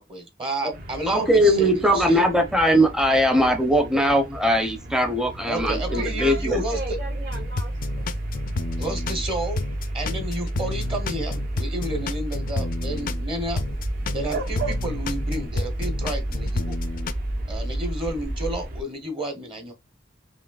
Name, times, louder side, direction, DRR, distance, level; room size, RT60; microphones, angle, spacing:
voice 1, 0.0-2.3 5.4-7.0 8.8-9.6 9.9-13.6 14.1-16.8 17.5-19.7, right 1 dB, 30° right, 0.9 m, -31 dB
sound 1, 0.7-18.8, right 1 dB, 55° right, 0.7 m, -36 dB
voice 2, 1.1-6.6, equal, 5° right, 0.6 m, -20 dB
sound 2, 5.6-18.5, right 1 dB, 85° right, 0.8 m, -31 dB
voice 3, 5.9-8.0, right 1 dB, 70° right, 2.0 m, -37 dB
sound 3, 7.3-9.3 9.6-13.3 13.6-17.1, left 4 dB, 50° left, 0.4 m, -31 dB
5.0 x 2.9 x 2.3 m
head